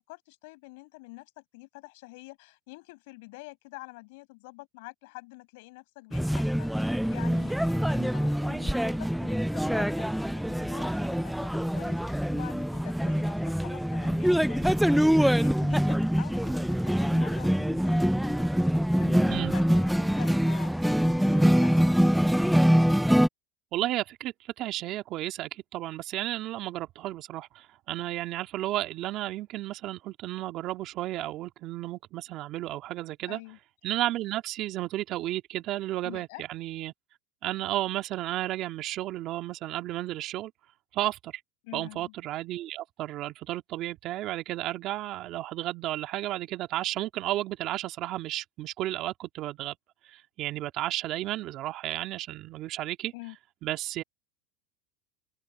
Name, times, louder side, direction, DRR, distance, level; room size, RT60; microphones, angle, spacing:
voice 1, 0.0-18.6 19.0-22.0 33.3-33.6 36.0-36.4 41.6-42.1 53.1-53.4, left 25 dB, 70° left, 5.6 m, -47 dB
sound 1, 6.1-23.3, equal, ahead, 0.4 m, -24 dB
voice 2, 23.7-33.4 33.8-36.9 37.4-40.5 40.9-41.3 41.7-49.8 50.1-53.1 53.6-54.0, right 15 dB, 45° right, 2.1 m, -33 dB
supercardioid pair, 115°, 0 cm